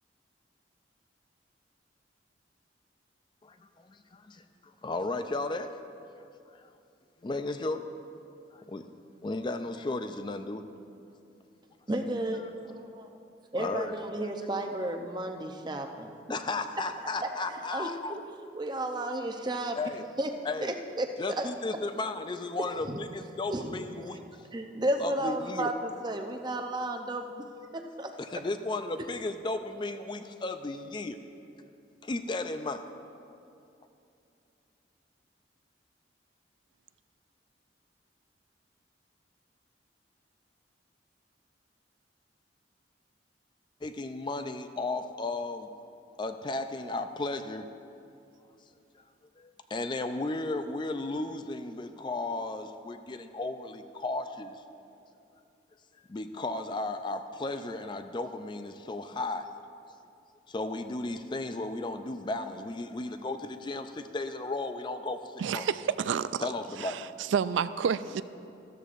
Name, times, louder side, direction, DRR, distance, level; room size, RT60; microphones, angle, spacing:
voice 1, 3.4-5.7 6.5-6.7 7.2-7.8 8.5-8.9 9.2-10.6 12.4-12.5 13.6-14.0 16.3-18.2 19.8-20.1 20.4-20.8 21.2-24.2 25.0-25.7 28.2-31.2 32.0-32.9 43.8-45.7 46.2-47.7 49.4-54.6 56.1-59.5 60.5-65.7 66.4-67.0, left 2 dB, 25° left, 9 dB, 0.4 m, -34 dB
voice 2, 11.9-12.5 13.5-16.1 17.7-18.2 18.5-19.8 20.2-20.3 20.6-21.1 21.4-21.5 22.9-23.0 23.5-23.8 24.1-24.2 24.5-27.4 27.7-28.1, right 1 dB, 25° right, 4 dB, 0.6 m, -32 dB
voice 3, 65.4-66.5 66.9-67.0 67.3-68.2, right 7 dB, 85° right, 14 dB, 0.3 m, -29 dB
14.0 x 13.0 x 2.5 m, 2.6 s
head